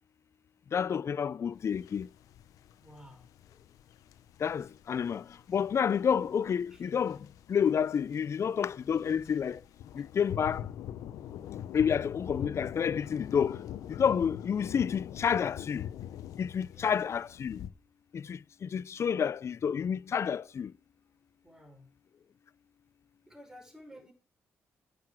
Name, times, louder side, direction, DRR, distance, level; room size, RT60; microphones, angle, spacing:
voice 1, 0.7-2.1 4.4-9.6 9.9-10.7 11.7-15.9 16.4-17.6 18.1-20.7, left 7 dB, 55° left, 0.5 m, -30 dB
sound 1, 1.6-17.7, left 11 dB, 80° left, 0.8 m, -44 dB
voice 2, 2.8-3.3 6.7-6.8 16.7-16.9 21.4-21.9 23.3-24.1, equal, 10° right, 5.5 m, -53 dB
9.4 x 6.8 x 6.1 m
supercardioid pair, 55°, 6 cm